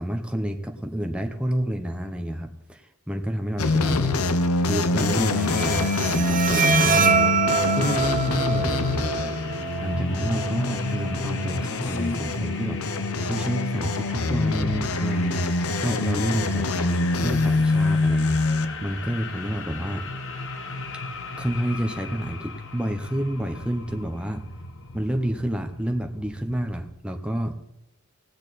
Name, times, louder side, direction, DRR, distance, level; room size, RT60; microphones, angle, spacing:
voice 1, 0.0-4.2 4.7-9.3 9.8-12.8 13.2-15.4 15.8-20.0 21.4-24.4 24.9-27.5, equal, 5° right, 4 dB, 0.9 m, -29 dB
sound 1, 3.6-18.7, left 3 dB, 85° left, 0.8 m, -25 dB
Bowed string instrument, 5.4-12.4, right 6 dB, 40° right, 0.9 m, -26 dB
sound 2, 9.0-26.9, left 2 dB, 60° left, 1.4 m, -35 dB
17.5 x 8.8 x 4.1 m, 0.81 s
head